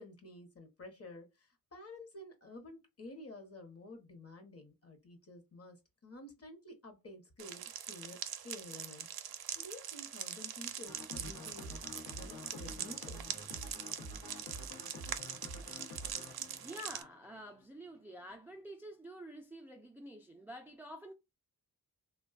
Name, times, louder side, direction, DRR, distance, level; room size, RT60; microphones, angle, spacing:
voice 1, 0.0-11.7 12.1-13.3, left 2 dB, 40° left, 0.9 m, -51 dB
sound 1, 7.4-17.0, right 9 dB, 75° right, 0.5 m, -43 dB
sound 2, 10.9-17.6, left 1 dB, 75° left, 0.8 m, -48 dB
voice 2, 16.5-21.1, equal, 5° right, 0.3 m, -49 dB
3.2 x 2.2 x 2.3 m
wide cardioid pair, 90°, 37 cm